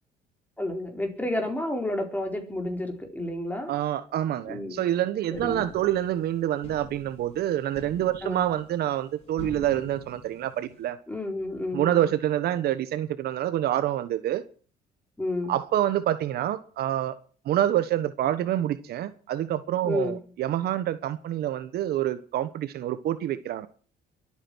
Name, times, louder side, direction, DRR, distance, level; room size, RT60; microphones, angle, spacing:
voice 1, 0.6-3.7 4.5-4.8 5.3-5.7 8.2-8.4 11.1-12.0 15.2-15.5 19.8-20.2, left 1 dB, 10° left, 4.3 m, -30 dB
voice 2, 3.7-11.0 11.7-14.4 15.5-17.1 17.4-23.7, right 12 dB, 70° right, 1.3 m, -27 dB
sound 1, 5.3-10.9, left 3 dB, 35° left, 5.4 m, -46 dB
23.5 x 8.9 x 6.3 m
cardioid pair, 110°, 17 cm